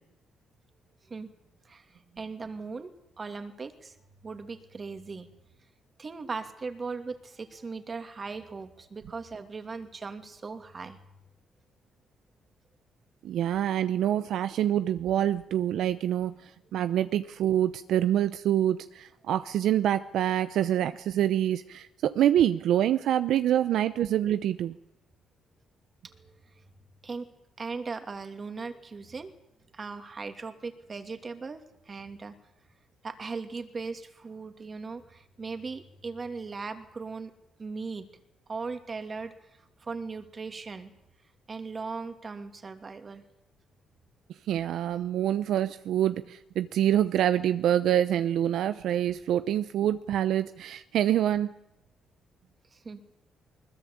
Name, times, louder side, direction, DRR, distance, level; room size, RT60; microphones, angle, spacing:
voice 1, 1.6-4.0 4.2-5.3 6.0-11.0 26.0-26.6 27.0-27.3 27.6-29.3 29.7-32.4 33.0-37.3 37.6-38.1 38.5-39.3 39.8-40.9 41.5-43.2 52.7-53.0, right 4 dB, 35° right, 7 dB, 2.7 m, -38 dB
voice 2, 13.2-24.8 44.5-51.5, right 11 dB, 75° right, 12 dB, 0.8 m, -26 dB
21.0 x 20.5 x 8.7 m, 0.86 s
cardioid pair, 90°, 0 cm